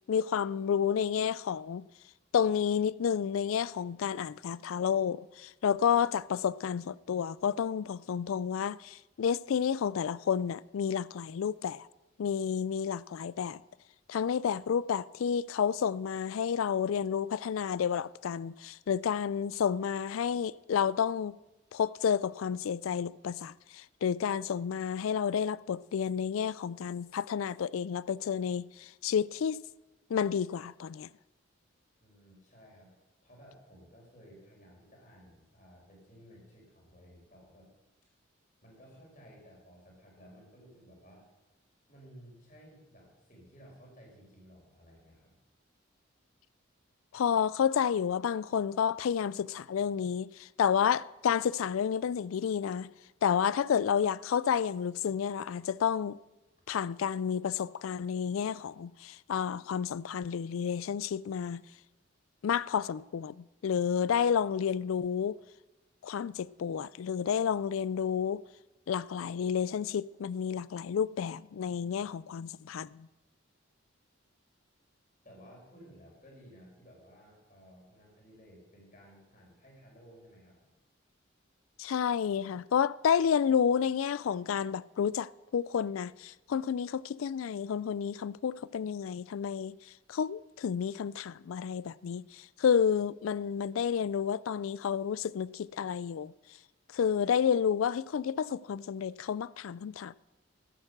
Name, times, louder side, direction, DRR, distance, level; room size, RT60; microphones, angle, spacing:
voice 1, 0.1-1.8 2.3-11.9 12.2-13.6 14.1-21.4 21.7-29.6 30.1-31.1 47.1-52.9 53.2-56.2 56.7-61.6 62.4-65.4 66.0-68.4 68.9-73.1 81.8-89.8 90.1-96.3 96.9-100.1, left 7 dB, 85° left, 0.4 m, -30 dB
voice 2, 32.0-32.9 33.2-37.7 38.6-41.3 41.9-45.3 71.7-72.4 75.2-80.7, equal, 40° left, 4.9 m, -56 dB
14.0 x 10.5 x 6.6 m
head